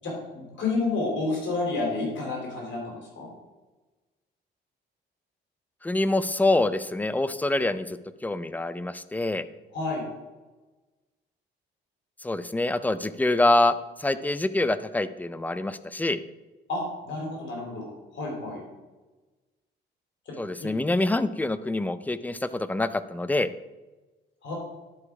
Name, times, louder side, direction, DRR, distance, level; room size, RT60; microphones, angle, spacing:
voice 1, 0.0-3.3 9.7-10.0 16.7-17.9 18.1-18.6 20.6-20.7 24.4-24.5, left 3 dB, 65° left, -1 dB, 3.3 m, -30 dB
voice 2, 5.8-9.4 12.2-16.2 20.4-23.5, left 2 dB, 10° left, 13 dB, 0.5 m, -26 dB
11.0 x 4.9 x 4.8 m, 1.2 s
cardioid pair, 90°, 20 cm